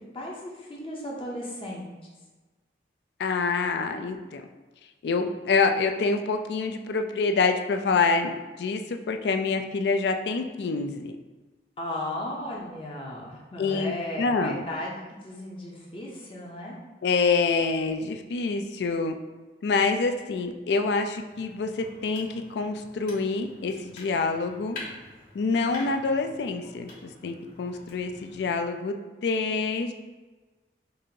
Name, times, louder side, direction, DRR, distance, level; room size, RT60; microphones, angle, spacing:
voice 1, 0.1-1.9 11.8-16.8, left 1 dB, 30° left, -3 dB, 0.6 m, -35 dB
voice 2, 3.2-4.4 5.0-8.3 8.6-11.1 13.6-13.9 14.2-14.6 17.0-19.1 19.6-24.8 25.3-29.9, left 4 dB, 70° left, 6 dB, 0.3 m, -26 dB
sound 1, 21.3-28.6, left 2 dB, 50° left, 1.3 m, -46 dB
5.3 x 2.5 x 2.7 m, 1.3 s
head